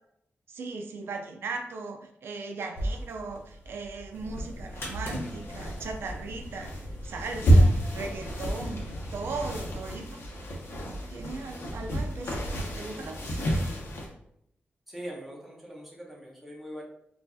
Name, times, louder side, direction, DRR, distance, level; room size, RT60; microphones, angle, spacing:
voice 1, 0.5-10.2 11.1-13.6, right 3 dB, 80° right, 4 dB, 0.4 m, -38 dB
sound 1, 2.8-14.1, right 1 dB, 90° left, 0.8 m, -29 dB
sound 2, 4.1-10.0, equal, 65° left, 1.2 m, -40 dB
voice 2, 14.9-16.8, equal, 5° right, -4 dB, 0.8 m, -42 dB
4.4 x 2.4 x 2.6 m, 0.75 s
wide cardioid pair, 180°, 4 cm